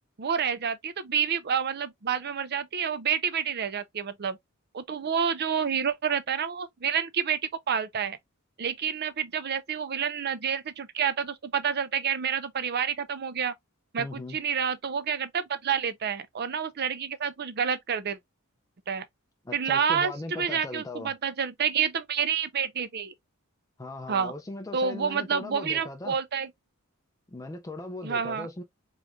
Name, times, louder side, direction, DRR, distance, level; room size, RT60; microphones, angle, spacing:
voice 1, 0.2-4.4 4.7-7.4 7.7-8.2 8.6-13.5 13.9-18.2 18.9-19.0 19.5-23.1 24.1-24.3 24.7-26.5 28.0-28.5, right 7 dB, 50° right, 0.6 m, -29 dB
voice 2, 14.0-14.4 19.4-21.1 23.8-26.2 27.3-28.6, left 2 dB, 15° left, 0.5 m, -38 dB
4.9 x 3.1 x 2.3 m
head